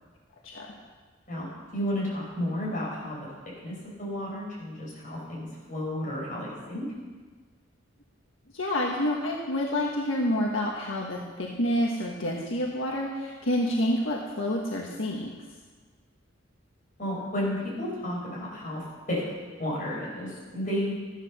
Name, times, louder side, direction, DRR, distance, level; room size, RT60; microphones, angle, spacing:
voice 1, 1.7-3.3 3.6-6.9 17.0-19.2 19.6-20.9, left 1 dB, 40° left, -5 dB, 6.2 m, -32 dB
voice 2, 8.5-15.3, left 1 dB, 80° left, -1 dB, 1.6 m, -28 dB
14.0 x 11.0 x 6.8 m, 1.4 s
head